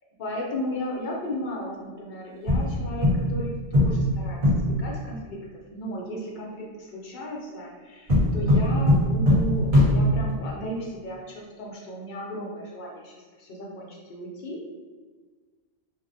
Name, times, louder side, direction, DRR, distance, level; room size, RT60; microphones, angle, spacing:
voice 1, 0.2-4.4 4.8-5.4 5.7-14.7, equal, 60° left, -3 dB, 0.5 m, -35 dB
sound 1, 2.5-3.4 3.7-4.8 8.1-10.3, left 1 dB, 50° right, 1.1 m, -20 dB
2.6 x 2.1 x 2.6 m, 1.4 s
omnidirectional pair, 1.2 m